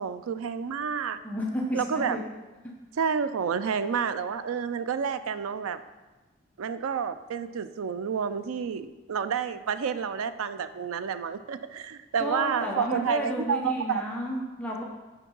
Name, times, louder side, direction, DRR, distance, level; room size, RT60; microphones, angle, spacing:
voice 1, 0.0-1.2 1.7-2.2 3.0-5.8 6.6-14.0, right 6 dB, 85° right, 12 dB, 0.4 m, -29 dB
voice 2, 1.2-2.2 12.2-14.8, left 1 dB, 5° left, -3 dB, 0.8 m, -32 dB
5.9 x 4.6 x 5.4 m, 1.2 s
head